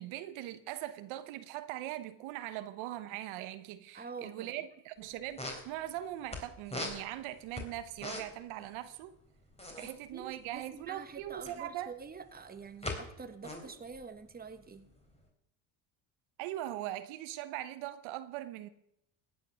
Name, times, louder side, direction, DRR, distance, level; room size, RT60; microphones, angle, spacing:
voice 1, 0.0-9.1 9.8-11.9 16.4-18.7, right 13 dB, 75° right, 1.2 m, -41 dB
voice 2, 3.9-4.5 9.8-14.9, right 5 dB, 20° right, 1.5 m, -47 dB
sound 1, 5.0-5.1 5.2-6.4 6.7-8.5 8.7-8.9 9.2-11.7 12.2-13.0 13.3-15.2, left 1 dB, 15° left, 3.7 m, -41 dB
15.5 x 9.8 x 6.3 m
cardioid pair, 105°, 48 cm